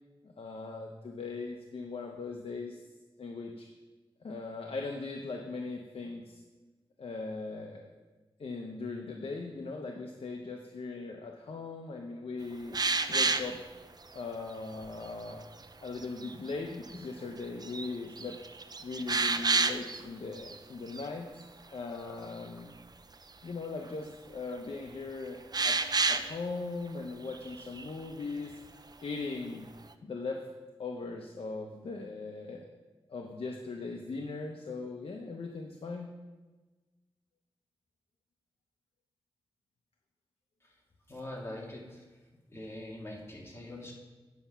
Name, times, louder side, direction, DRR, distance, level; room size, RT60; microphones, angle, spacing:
voice 1, 0.2-2.8 3.2-3.7 4.2-6.4 7.0-7.9 8.4-12.8 13.1-13.6 14.1-15.4 15.8-18.4 18.8-21.4 21.7-22.7 23.4-25.8 26.1-28.6 29.0-29.7 30.0-30.4 30.8-32.6 33.1-36.1, left 3 dB, 75° left, 2 dB, 0.8 m, -39 dB
sound 1, 12.7-13.6 14.2-14.3 14.8-15.3 15.9-16.3 16.9-17.0 17.4-17.9 18.2-20.0 20.4-20.6 20.9-21.1 25.5-26.4 27.3-27.9, right 3 dB, 45° right, 0.5 m, -29 dB
voice 2, 41.1-42.0 42.5-43.9, left 1 dB, 25° left, -2 dB, 2.2 m, -43 dB
9.4 x 5.8 x 5.6 m, 1.2 s
wide cardioid pair, 65°, 10 cm